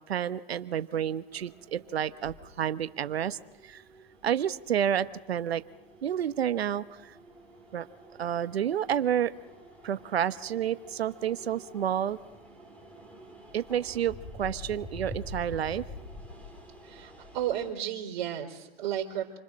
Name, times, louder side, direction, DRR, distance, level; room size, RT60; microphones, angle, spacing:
voice 1, 0.1-3.4 3.6-3.8 4.2-5.6 6.0-7.1 7.7-7.9 8.2-9.3 9.8-12.2 13.5-15.8, right 9 dB, 85° right, 13 dB, 1.1 m, -30 dB
sound 1, 1.3-17.7, left 1 dB, 5° left, 4.2 m, -48 dB
voice 2, 16.8-19.4, right 10 dB, 55° right, 0 dB, 4.3 m, -33 dB
28.5 x 25.0 x 6.4 m, 1.1 s
hypercardioid pair, 130°, 30 cm